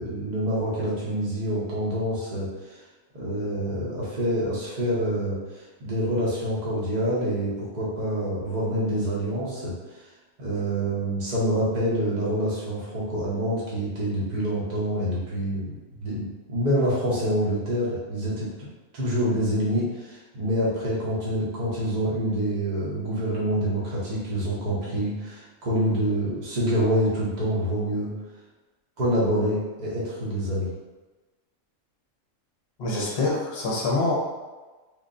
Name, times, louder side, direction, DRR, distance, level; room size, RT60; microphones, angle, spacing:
voice 1, 0.0-2.8 3.1-9.7 10.4-15.7 16.0-18.7 18.9-28.1 29.0-30.7, equal, 35° right, -8 dB, 0.8 m, -26 dB
voice 2, 32.8-34.1, left 2 dB, 50° left, -3 dB, 0.9 m, -25 dB
3.5 x 3.2 x 2.5 m, 1.2 s
omnidirectional pair, 1.5 m